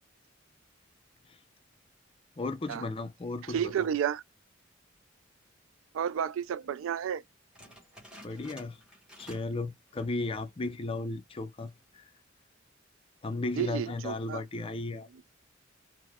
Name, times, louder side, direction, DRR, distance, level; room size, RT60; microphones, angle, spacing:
voice 1, 2.4-3.9 8.2-8.8 9.2-12.1 13.2-15.1, left 2 dB, 30° left, 0.4 m, -35 dB
voice 2, 3.4-4.2 5.9-7.2 13.6-14.4, right 8 dB, 75° right, 0.3 m, -31 dB
sound 1, 7.6-9.6 9.9-10.2 10.7-10.8 11.5-11.9, equal, 5° right, 1.3 m, -53 dB
4.5 x 2.0 x 2.2 m
head